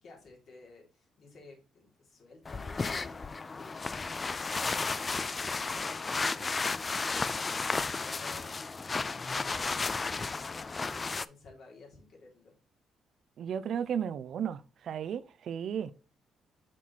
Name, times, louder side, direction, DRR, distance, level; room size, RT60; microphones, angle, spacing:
voice 1, 0.0-12.5, left 3 dB, 65° left, 3.1 m, -54 dB
sound 1, 2.5-11.3, left 4 dB, 30° left, 0.3 m, -33 dB
voice 2, 13.4-15.9, right 8 dB, 65° right, 0.4 m, -34 dB
6.1 x 4.6 x 4.0 m
cardioid pair, 90°, 0 cm